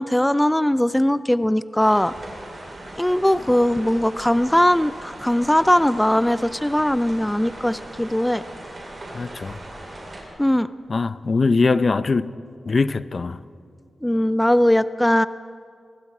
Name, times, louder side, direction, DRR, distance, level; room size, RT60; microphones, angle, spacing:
voice 1, 0.0-2.1 3.0-8.4 10.4-10.7 14.0-15.3, left 1 dB, 5° left, 14 dB, 0.4 m, -20 dB
sound 1, 1.8-10.2, right 1 dB, 40° right, 6.9 m, -39 dB
voice 2, 9.1-9.6 10.9-12.3 12.7-13.4, left 4 dB, 45° left, 14 dB, 0.7 m, -21 dB
27.0 x 20.0 x 4.8 m, 2.2 s
cardioid pair, 75°, 0 cm